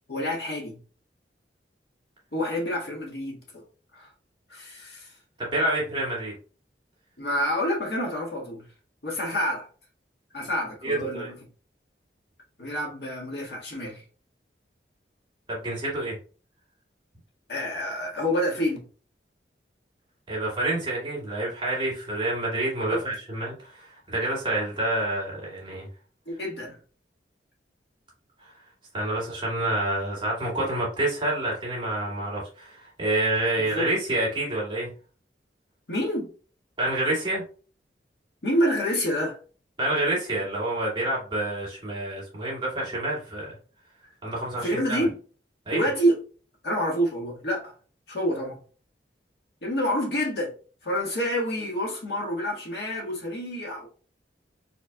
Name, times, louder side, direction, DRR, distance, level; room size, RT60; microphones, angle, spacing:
voice 1, 0.1-0.8 2.3-3.6 3.9-4.1 4.5-5.1 7.2-8.6 9.0-9.7 10.3-11.3 12.6-14.0 17.5-18.8 22.9-23.0 26.3-26.8 33.6-33.9 35.9-36.3 38.4-39.4 44.6-45.1 45.7-46.2 46.6-47.7 48.1-48.6 49.6-50.5 50.8-53.9, equal, 70° left, 1.8 m, -28 dB
voice 2, 5.4-6.3 10.8-11.3 15.5-16.1 20.3-25.9 28.9-34.9 36.8-37.4 39.8-43.5 44.2-45.0 45.7-45.9, right 1 dB, 25° right, 2.1 m, -28 dB
4.5 x 4.3 x 2.3 m
head